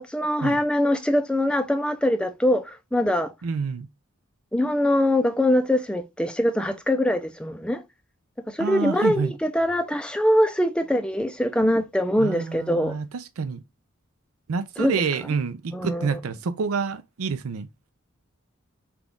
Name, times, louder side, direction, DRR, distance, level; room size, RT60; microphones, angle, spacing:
voice 1, 0.0-3.3 4.5-7.8 8.5-13.0 14.8-15.0 15.7-16.2, left 1 dB, 5° left, 0.4 m, -23 dB
voice 2, 3.4-3.9 8.6-9.3 12.2-13.6 14.5-17.7, right 5 dB, 90° right, 0.5 m, -28 dB
5.8 x 2.4 x 3.5 m
head